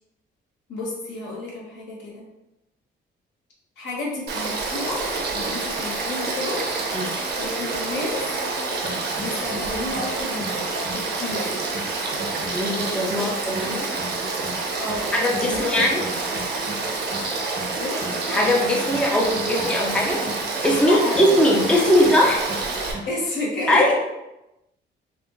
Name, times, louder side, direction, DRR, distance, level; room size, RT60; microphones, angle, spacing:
voice 1, 0.7-2.2 3.8-5.0 5.3-6.6 7.4-8.3 9.2-10.6 10.9-11.5 13.2-13.3 14.8-15.9 17.8-18.0 20.8-21.5 21.9-22.0 23.0-23.9, left 2 dB, 65° left, -3 dB, 1.1 m, -31 dB
Frog / Stream, 4.3-22.9, right 3 dB, 55° right, 0.7 m, -28 dB
sound 1, 8.8-21.8 22.0-23.1, right 1 dB, 85° right, 1.2 m, -37 dB
voice 2, 12.5-13.9 15.1-16.1 18.3-20.2 20.6-22.4 23.7-23.9, left 1 dB, 5° left, -2 dB, 0.5 m, -20 dB
3.5 x 2.5 x 2.5 m, 0.93 s
cardioid pair, 90°, 20 cm